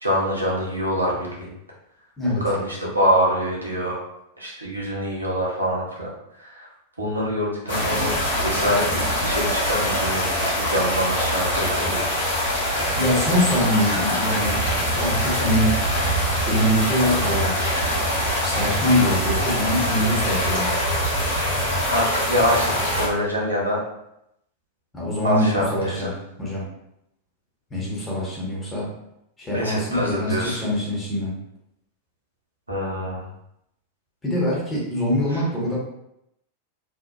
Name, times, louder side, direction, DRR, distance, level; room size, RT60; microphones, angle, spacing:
voice 1, 0.0-1.5 2.4-4.0 4.4-6.1 6.4-6.7 7.0-8.1 8.4-12.0 21.9-23.8 25.2-26.1 29.5-30.6 32.7-33.3 35.3-35.4, equal, 85° right, -3 dB, 0.7 m, -25 dB
sound 1, 7.7-23.1, equal, 75° left, 1.4 m, -23 dB
voice 2, 13.0-14.6 15.0-15.8 16.5-17.6 18.4-20.7 24.9-26.1 26.4-26.6 27.7-28.9 29.4-31.3 34.2-35.8, equal, 15° left, -6 dB, 0.9 m, -23 dB
2.8 x 2.0 x 2.3 m, 0.81 s
figure-of-eight pair, 90°, 0 cm